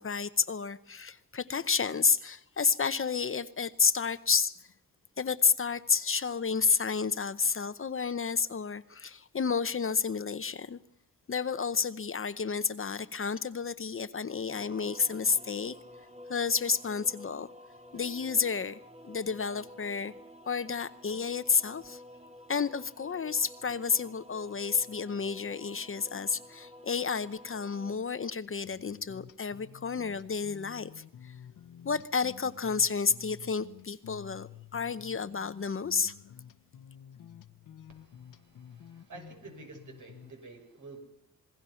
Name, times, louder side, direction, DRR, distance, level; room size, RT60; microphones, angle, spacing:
voice 1, 0.0-4.5 5.2-10.8 11.3-15.8 16.3-17.5 17.9-20.1 20.5-22.0 22.5-31.3 31.8-36.1, left 5 dB, 40° left, 0.8 m, -30 dB
sound 1, 14.5-28.0, left 1 dB, 20° right, 1.6 m, -51 dB
sound 2, 28.6-40.3, left 9 dB, 65° left, 1.0 m, -51 dB
voice 2, 37.9-41.0, right 3 dB, 65° right, 6.7 m, -50 dB
27.5 x 21.5 x 5.7 m
wide cardioid pair, 105°, 33 cm